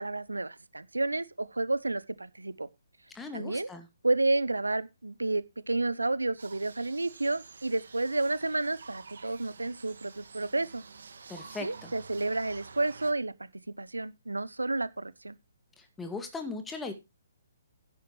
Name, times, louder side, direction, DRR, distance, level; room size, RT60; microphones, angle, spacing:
voice 1, 0.0-2.7 3.3-3.7 4.0-10.8 11.6-13.5 13.8-15.4, right 2 dB, 85° right, 0.8 m, -31 dB
voice 2, 3.1-3.9 11.3-11.9 15.8-16.9, left 3 dB, 10° left, 2.0 m, -39 dB
sound 1, 6.4-13.1, right 5 dB, 65° right, 1.9 m, -49 dB
12.0 x 10.5 x 3.1 m
figure-of-eight pair, 135°, 0 cm